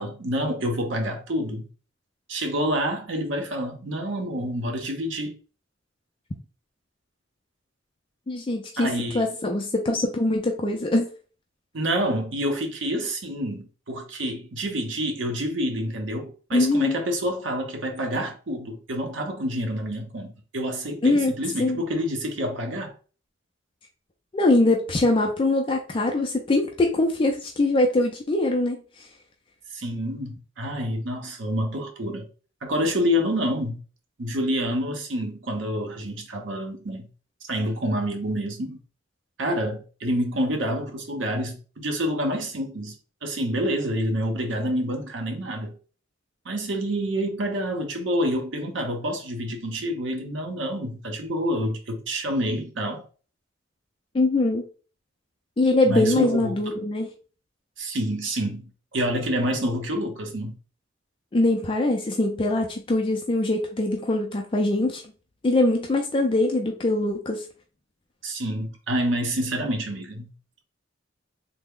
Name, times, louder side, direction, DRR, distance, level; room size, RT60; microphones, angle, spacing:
voice 1, 0.0-1.7 2.3-5.3 8.8-9.3 11.7-22.9 29.7-32.3 32.6-33.8 34.2-37.1 37.4-38.8 39.4-43.0 43.2-45.8 46.4-53.0 55.8-56.8 57.8-60.6 68.2-70.3, equal, 75° right, 0.8 m, -28 dB
voice 2, 8.3-8.9 9.1-11.1 16.5-17.0 21.0-21.3 21.6-21.8 24.3-28.8 54.1-54.6 55.6-57.1 61.3-65.0 65.4-67.4, left 2 dB, 25° left, 0.4 m, -22 dB
3.3 x 2.1 x 3.6 m
head